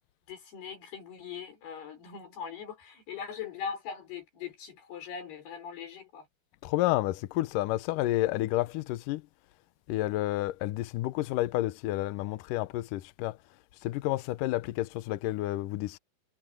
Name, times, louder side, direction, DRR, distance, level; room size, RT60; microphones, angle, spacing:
voice 1, 0.3-6.3, left 7 dB, 70° left, 7.0 m, -41 dB
voice 2, 6.6-9.2 9.9-13.3 13.8-16.0, left 16 dB, 90° left, 1.8 m, -30 dB
omnidirectional pair, 4.8 m